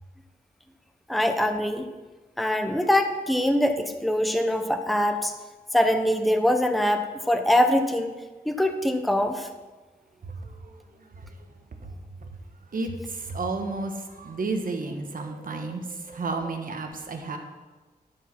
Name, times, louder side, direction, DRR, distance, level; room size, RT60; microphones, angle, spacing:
voice 1, 1.1-1.8 2.4-5.3 5.7-8.1 8.5-9.5 15.2-15.7 16.1-16.2, left 1 dB, ahead, 6 dB, 0.7 m, -23 dB
voice 2, 10.2-10.8 11.2-11.3 11.8-11.9 12.2-12.3 12.7-17.4, right 3 dB, 60° right, 4 dB, 1.2 m, -32 dB
12.0 x 5.0 x 5.8 m, 1.2 s
wide cardioid pair, 105°, 16 cm